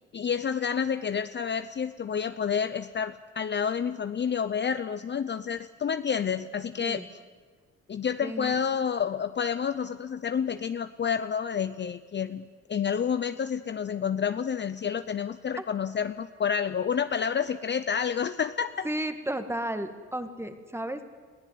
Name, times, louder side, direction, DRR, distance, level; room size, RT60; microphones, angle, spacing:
voice 1, 0.1-7.0 7.9-18.9, left 7 dB, 35° left, 11 dB, 0.7 m, -29 dB
voice 2, 8.2-8.8 15.6-15.7 18.8-21.1, right 1 dB, 10° right, 8 dB, 1.8 m, -33 dB
21.5 x 15.0 x 9.5 m, 1.5 s
cardioid pair, 90°, 30 cm